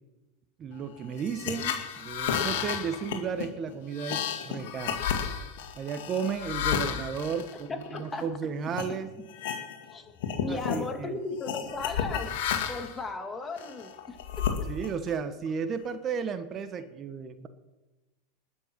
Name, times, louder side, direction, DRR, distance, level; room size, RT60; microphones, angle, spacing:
voice 1, 0.6-5.0 5.8-9.1 10.5-11.2 14.7-17.5, right 6 dB, 35° right, 10 dB, 1.2 m, -34 dB
sound 1, 1.2-8.2 8.7-8.9 9.3-9.9 10.2-10.9 11.5-13.0 13.6-15.1, left 8 dB, 65° left, 2.0 m, -32 dB
voice 2, 7.7-8.3 9.9-10.1 10.4-12.3 12.7-14.5, left 3 dB, 20° left, 5 dB, 2.2 m, -36 dB
20.0 x 7.9 x 6.0 m, 1.1 s
hypercardioid pair, 95°, 0 cm